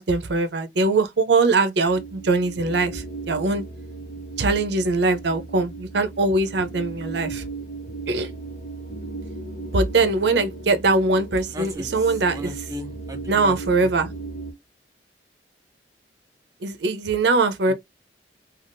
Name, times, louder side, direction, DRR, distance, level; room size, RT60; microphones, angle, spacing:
voice 1, 0.0-3.6 4.4-7.4 8.1-8.3 9.7-12.5 13.3-14.1 16.6-17.7, right 3 dB, 70° right, 0.6 m, -22 dB
sound 1, 1.8-14.5, right 3 dB, 50° left, 1.0 m, -36 dB
voice 2, 11.5-13.9 17.7-17.8, right 1 dB, 20° right, 0.6 m, -37 dB
3.5 x 2.4 x 2.5 m
head